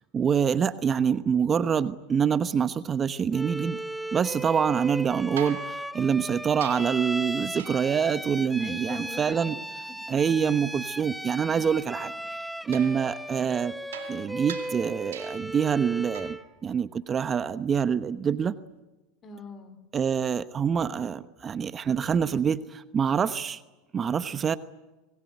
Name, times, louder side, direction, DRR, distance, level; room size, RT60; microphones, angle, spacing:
voice 1, 0.1-3.8 4.1-9.6 10.1-12.4 12.7-13.8 14.1-18.5 19.9-23.6 23.9-24.6, right 7 dB, 30° right, 12 dB, 1.0 m, -26 dB
Bowed string instrument, 3.3-16.5, right 1 dB, ahead, 0.9 m, -36 dB
voice 2, 4.4-4.8 8.6-10.2 11.5-11.8 19.2-19.8, left 3 dB, 35° left, 11 dB, 4.1 m, -43 dB
sound 1, 5.4-7.1 7.6-8.0 12.7-15.6 16.1-16.5 18.5-18.6, right 9 dB, 85° right, 3.4 m, -43 dB
26.5 x 19.5 x 9.1 m, 1.1 s
hypercardioid pair, 95°, 0 cm